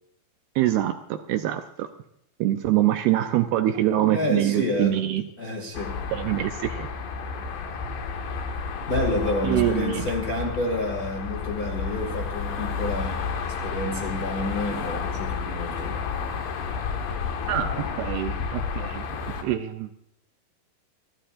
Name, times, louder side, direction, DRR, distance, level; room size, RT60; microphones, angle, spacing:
voice 1, 0.6-1.9 2.4-5.2 6.1-6.9 7.9-8.0 9.4-10.1 17.5-19.1 19.4-20.0, right 13 dB, 80° right, 7 dB, 2.4 m, -25 dB
voice 2, 4.1-5.0 5.4-6.0 8.9-16.0, left 1 dB, 30° left, 1 dB, 1.6 m, -29 dB
sound 1, 5.7-19.4, left 5 dB, 80° left, 4.0 m, -31 dB
28.0 x 13.0 x 2.5 m, 0.73 s
omnidirectional pair, 5.0 m